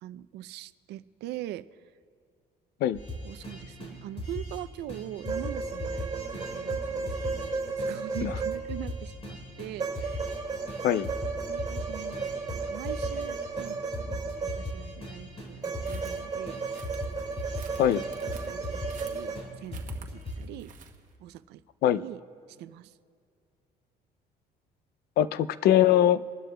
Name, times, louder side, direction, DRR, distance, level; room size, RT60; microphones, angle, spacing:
voice 1, 0.0-1.6 3.2-10.2 11.5-12.2 12.7-16.6 18.4-20.7 21.2-22.2 22.5-22.9, right 14 dB, 80° right, 15 dB, 0.4 m, -42 dB
sound 1, 2.9-4.6 4.9-7.5 7.8-7.9 8.1-10.4 10.7-13.3 13.6-13.7 13.9-16.2 16.5-19.1 19.4-19.5 19.7-20.4, left 1 dB, 40° left, 3.9 m, -38 dB
sound 2, 5.2-9.1 9.8-15.0 15.6-19.4, right 4 dB, 25° right, 4.0 m, -34 dB
sound 3, 15.8-21.1, right 7 dB, 50° right, 1.1 m, -52 dB
voice 2, 25.2-26.2, left 11 dB, 70° left, 16 dB, 0.4 m, -22 dB
27.0 x 12.5 x 2.2 m, 2.2 s
cardioid pair, 110°, 17 cm